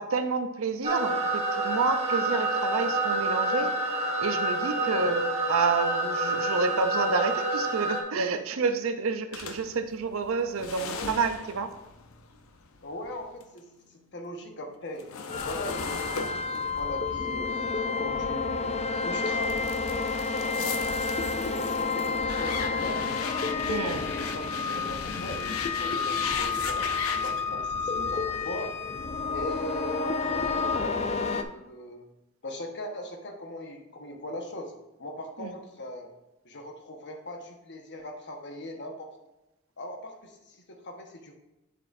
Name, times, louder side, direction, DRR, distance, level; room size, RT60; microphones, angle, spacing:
voice 1, 0.0-3.7 4.2-5.2 5.5-11.7 23.7-24.0 35.4-35.5, right 4 dB, 70° right, 8 dB, 0.6 m, -29 dB
sound 1, 0.8-8.0, right 2 dB, 30° right, 1.2 m, -28 dB
voice 2, 4.8-5.2 10.8-11.3 12.8-15.1 15.4-17.5 18.0-23.1 23.4-28.7 29.3-32.1 32.4-34.7 35.0-36.1 36.4-39.2 39.8-41.3, left 1 dB, 60° left, 3 dB, 1.2 m, -39 dB
sound 2, 9.3-13.6 13.9-18.9 19.4-27.4, left 6 dB, 75° left, 0.7 m, -38 dB
sound 3, 15.3-31.4, left 4 dB, 30° left, 0.4 m, -30 dB
7.4 x 6.8 x 2.6 m, 0.97 s
head